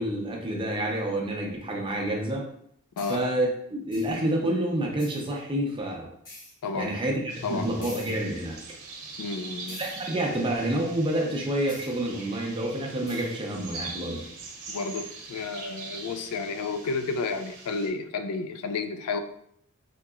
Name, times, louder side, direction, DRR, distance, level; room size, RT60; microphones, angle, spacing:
voice 1, 0.0-2.5 3.1-6.1 6.7-8.6 9.8-14.2, right 1 dB, 25° right, 0 dB, 0.6 m, -28 dB
sound 1, 3.0-3.2 3.9-4.3 5.0-5.3 6.2-6.5 7.8-8.2 9.7-10.1 11.7-11.9 13.1-13.3, left 1 dB, 40° left, 1.0 m, -45 dB
voice 2, 6.6-6.9 7.4-7.9 9.2-9.8 14.7-19.2, left 4 dB, 85° left, 8 dB, 0.3 m, -31 dB
sound 2, 7.3-17.9, right 3 dB, 75° right, 0.7 m, -43 dB
3.7 x 2.9 x 2.4 m, 0.69 s
head